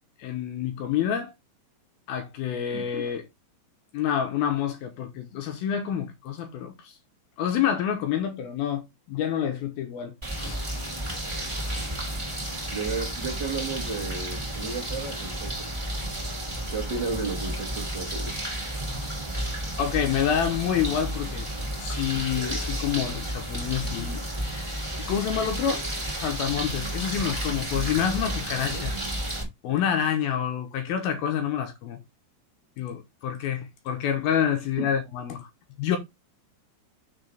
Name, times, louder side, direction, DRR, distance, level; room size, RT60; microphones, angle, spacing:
voice 1, 0.2-1.3 2.1-3.3 3.9-7.0 7.4-10.6 19.8-21.5 21.8-24.8 25.1-25.8 26.2-28.9 29.6-32.0 32.8-35.5 35.8-36.0, left 9 dB, 75° left, 2.5 m, -28 dB
sound 1, 10.2-29.4, right 1 dB, 10° right, 1.8 m, -32 dB
voice 2, 12.7-15.7 16.7-18.3 28.7-28.8, right 4 dB, 50° right, 1.3 m, -33 dB
6.5 x 6.4 x 3.4 m
omnidirectional pair, 5.1 m